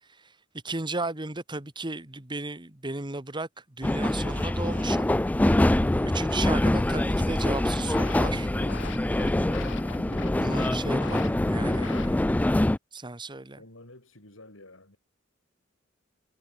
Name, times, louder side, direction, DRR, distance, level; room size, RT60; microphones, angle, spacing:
voice 1, 0.6-3.5 3.8-5.1 5.6-8.5 10.3-12.2 12.9-13.6, right 2 dB, 25° right, 1.7 m, -35 dB
sound 1, 3.8-12.8, left 1 dB, 10° left, 0.3 m, -25 dB
sound 2, 7.6-12.5, left 4 dB, 65° left, 1.7 m, -43 dB
voice 2, 13.6-15.0, left 2 dB, 85° left, 6.3 m, -51 dB
head